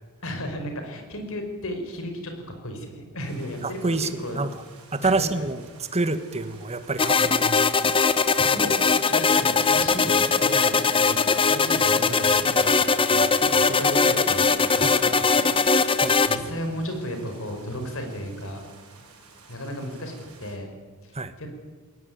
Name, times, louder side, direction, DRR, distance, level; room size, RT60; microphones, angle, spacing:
voice 1, 0.2-2.3 2.6-4.4 5.0-5.4 7.0-7.6 8.4-12.8 13.1-18.6 19.5-20.1 20.4-20.7 21.0-21.5, equal, 65° left, 5 dB, 5.2 m, -34 dB
sound 1, 3.2-20.6, right 3 dB, 80° right, 6.7 m, -51 dB
voice 2, 3.6-4.5 4.9-5.6 5.9-7.5 14.8-15.0 16.0-16.1 21.1-21.3, right 3 dB, 30° right, 11 dB, 1.5 m, -27 dB
sound 2, 7.0-16.4, left 4 dB, 25° left, 0.9 m, -20 dB
21.0 x 19.0 x 9.4 m, 1.3 s
head